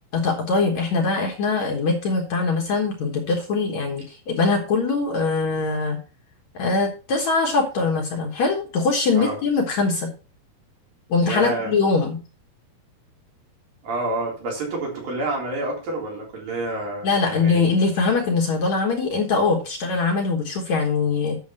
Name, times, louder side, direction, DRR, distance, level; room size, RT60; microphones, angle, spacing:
voice 1, 0.1-6.0 6.5-10.1 11.1-12.2 17.0-21.4, left 4 dB, 60° left, 1 dB, 2.2 m, -22 dB
voice 2, 11.2-11.7 13.8-17.6, right 2 dB, 65° right, -2 dB, 5.2 m, -28 dB
9.3 x 7.2 x 4.3 m, 0.34 s
omnidirectional pair, 4.4 m